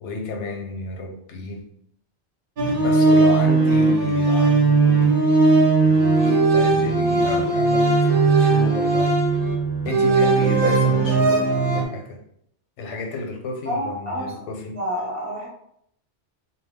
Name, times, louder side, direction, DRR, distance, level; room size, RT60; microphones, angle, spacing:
voice 1, 0.0-1.6 2.7-5.4 5.8-9.2 9.8-12.2 12.8-14.8, left 2 dB, 90° left, 0.9 m, -32 dB
sound 1, 2.6-11.9, right 3 dB, 55° right, 0.7 m, -18 dB
voice 2, 13.6-14.3 14.7-15.5, equal, 15° right, 0.9 m, -29 dB
2.2 x 2.1 x 3.5 m
omnidirectional pair, 1.2 m